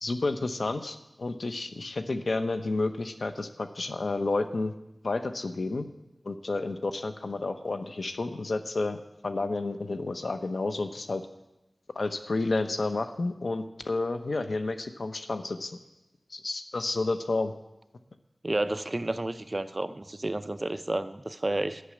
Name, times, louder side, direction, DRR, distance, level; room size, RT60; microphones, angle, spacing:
voice 1, 0.0-4.7 5.0-5.9 6.2-11.2 11.9-15.8 16.3-17.5, left 3 dB, 80° left, 8 dB, 0.8 m, -31 dB
voice 2, 18.4-21.8, right 2 dB, 35° right, 11 dB, 0.5 m, -31 dB
11.5 x 6.2 x 8.7 m, 0.94 s
wide cardioid pair, 65°, 0 cm